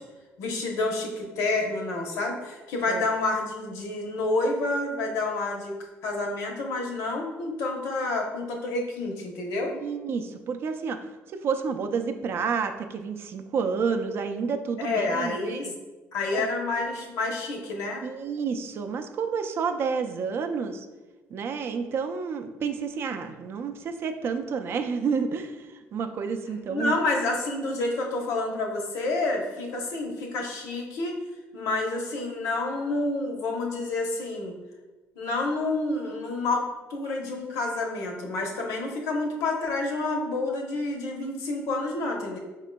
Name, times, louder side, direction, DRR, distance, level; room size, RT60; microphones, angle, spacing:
voice 1, 0.4-5.7 6.0-9.8 14.8-15.7 16.1-18.0 26.7-31.2 31.5-34.6 35.2-42.4, left 2 dB, 80° left, 1 dB, 0.8 m, -29 dB
voice 2, 9.8-11.0 11.3-15.7 16.3-16.5 18.0-20.9 21.3-26.9, right 5 dB, 50° right, 7 dB, 0.4 m, -30 dB
5.0 x 3.6 x 2.2 m, 1.2 s
cardioid pair, 120°, 5 cm